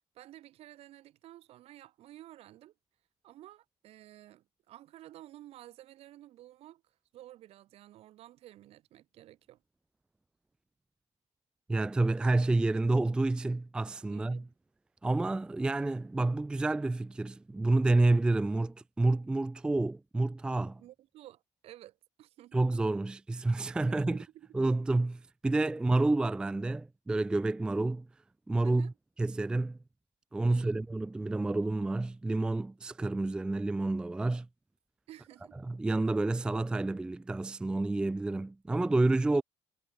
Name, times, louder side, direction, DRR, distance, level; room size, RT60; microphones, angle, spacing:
voice 1, 0.1-2.7 3.2-9.6 14.1-14.5 20.8-22.6 23.9-24.5 28.6-28.9 30.5-30.8 35.1-35.6 39.3-39.4, right 14 dB, 55° right, 4.1 m, -53 dB
voice 2, 11.7-14.4 15.0-20.8 22.5-24.2 24.5-28.1 28.5-28.9 29.2-29.8 30.3-34.5 35.6-39.4, right 2 dB, 5° right, 0.4 m, -29 dB
cardioid pair, 165°, 12 cm